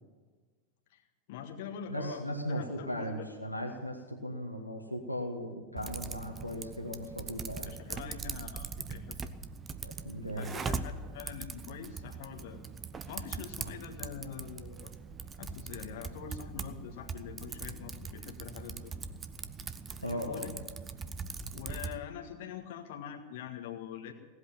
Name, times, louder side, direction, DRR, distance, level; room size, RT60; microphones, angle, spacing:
voice 1, 1.3-3.2 7.6-9.1 10.4-12.6 13.1-14.9 15.4-18.9 20.0-20.5 21.5-24.1, left 8 dB, 50° left, 3 dB, 1.7 m, -44 dB
voice 2, 1.9-7.7 9.8-10.5 20.0-20.4, equal, 85° left, 1 dB, 1.5 m, -37 dB
Typing, 5.8-22.0, right 5 dB, 20° right, 0.8 m, -41 dB
18.0 x 8.2 x 9.2 m, 1.4 s
figure-of-eight pair, 90°, 0 cm